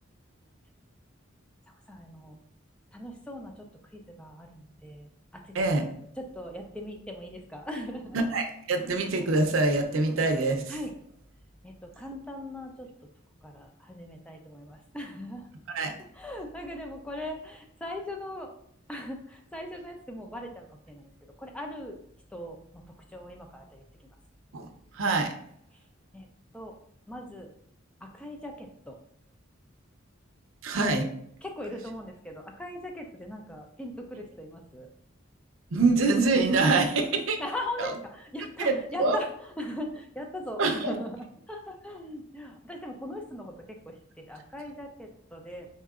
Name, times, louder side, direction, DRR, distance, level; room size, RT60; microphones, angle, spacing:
voice 1, 1.9-2.4 2.9-3.7 3.9-5.5 6.2-8.2 10.7-10.9 11.6-12.9 13.4-15.5 16.2-18.5 18.9-21.1 21.4-22.0 22.3-22.8 23.1-23.8 26.1-26.3 26.5-26.7 27.1-27.5 28.0-29.0 31.4-34.9 37.4-39.3 39.6-45.7, left 1 dB, 5° left, 2 dB, 0.4 m, -39 dB
voice 2, 5.5-5.9 8.1-10.7 15.7-15.9 24.5-24.7 24.9-25.3 30.6-31.1 35.7-37.4 37.8-37.9 38.6-39.2 40.6-41.0, right 3 dB, 85° right, 5 dB, 0.6 m, -25 dB
4.1 x 3.7 x 2.4 m, 0.69 s
head